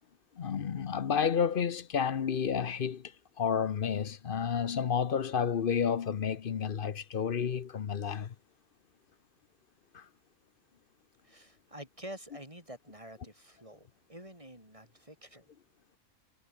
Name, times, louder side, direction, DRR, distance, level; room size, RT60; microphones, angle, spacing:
voice 1, 0.4-3.1 3.4-8.3 9.9-10.0, left 7 dB, 45° left, 0.9 m, -31 dB
voice 2, 11.2-15.5, right 1 dB, 25° right, 7.1 m, -48 dB
omnidirectional pair, 1.4 m